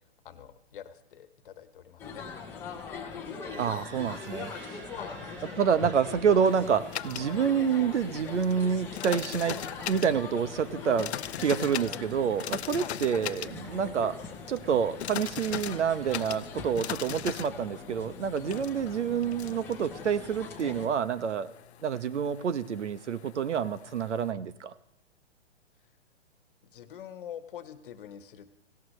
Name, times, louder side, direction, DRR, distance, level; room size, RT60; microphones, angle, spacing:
voice 1, 0.2-2.3 4.9-5.2 12.8-13.0 18.4-18.8 26.7-28.5, left 9 dB, 50° left, 11 dB, 1.3 m, -45 dB
sound 1, 2.0-20.9, left 5 dB, 5° left, 0.7 m, -42 dB
sound 2, 3.3-16.7, right 4 dB, 30° right, 6.0 m, -52 dB
voice 2, 3.6-4.5 5.6-11.1 11.4-14.2 14.5-21.5 21.8-24.7, right 7 dB, 85° right, 15 dB, 1.1 m, -28 dB
sound 3, 6.5-24.3, left 11 dB, 70° left, 0.6 m, -41 dB
18.5 x 17.0 x 3.2 m, 0.81 s
hypercardioid pair, 165°, 35 cm